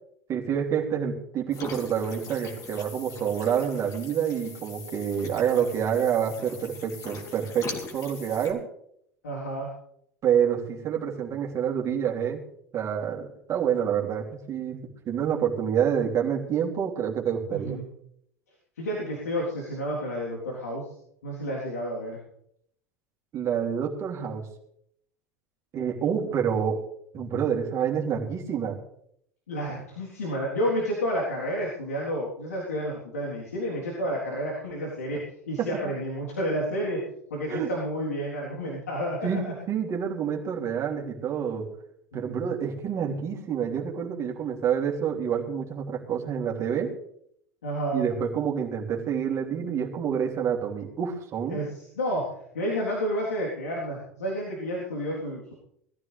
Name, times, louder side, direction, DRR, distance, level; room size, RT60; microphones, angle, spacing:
voice 1, 0.3-8.6 10.2-12.4 12.7-17.8 23.3-24.5 25.7-26.8 27.1-28.8 35.6-35.9 37.5-37.7 39.2-41.7 42.1-46.9 47.9-51.6, right 8 dB, 40° right, -1 dB, 3.1 m, -28 dB
sound 1, 1.5-8.5, left 4 dB, 40° left, 3.2 m, -42 dB
voice 2, 9.2-9.7 17.5-17.9 18.8-20.9 21.2-22.2 29.5-37.0 37.3-39.3 42.1-42.4 47.6-48.1 51.5-52.3 52.5-55.5, equal, 80° left, -4 dB, 3.7 m, -30 dB
21.5 x 14.5 x 3.4 m, 0.71 s
figure-of-eight pair, 75°, 8 cm